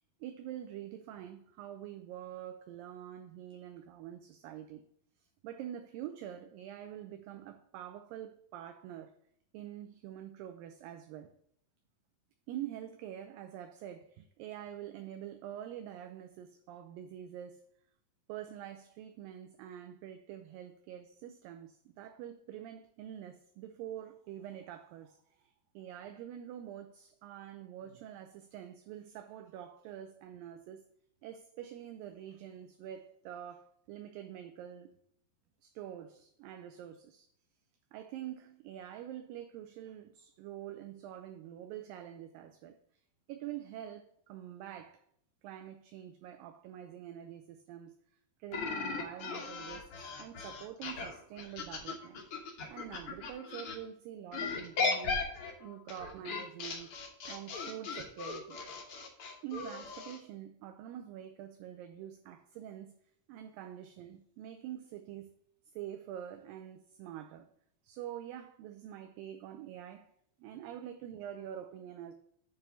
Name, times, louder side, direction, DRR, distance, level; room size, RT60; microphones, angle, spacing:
voice 1, 0.2-4.8 5.2-9.1 9.5-11.3 12.5-17.7 18.3-30.8 31.2-34.9 35.6-37.3 37.9-42.8 43.3-45.0 45.4-48.0 48.4-49.9 50.2-55.3 55.6-56.9 57.3-58.6 59.4-62.9 63.3-65.3 65.7-67.5 67.8-70.1 70.4-72.1, right 11 dB, 80° right, 2.2 m, -46 dB
sound 1, 48.5-53.8 54.3-60.2, left 4 dB, 80° left, 1.2 m, -37 dB
9.0 x 3.5 x 6.9 m
omnidirectional pair, 4.4 m